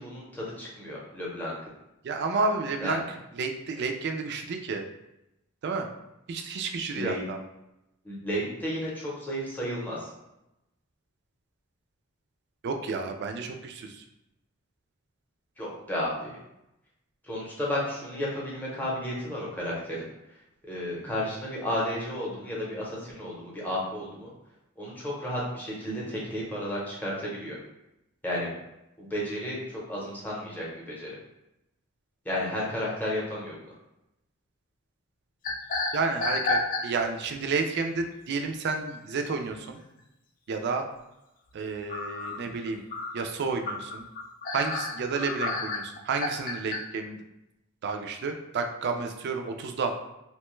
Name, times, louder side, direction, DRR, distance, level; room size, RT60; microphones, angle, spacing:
voice 1, 0.0-1.6 2.8-3.0 6.9-7.2 8.0-10.1 15.6-16.4 17.2-20.1 20.7-24.3 24.8-27.6 28.2-28.5 29.0-31.1 32.2-33.6 42.4-42.5, left 1 dB, 10° left, -5 dB, 0.7 m, -32 dB
voice 2, 2.0-3.0 3.3-4.8 5.6-5.9 6.3-7.4 12.6-14.0 35.9-39.8 40.5-40.8 41.5-42.8 43.1-44.0 44.5-47.2 47.8-49.9, right 4 dB, 55° right, 5 dB, 0.3 m, -31 dB
sound 1, 35.4-37.2 37.7-38.0 39.5-39.6 40.0-40.1 41.9-46.8, left 3 dB, 40° left, 0.3 m, -30 dB
2.9 x 2.2 x 3.0 m, 0.90 s
head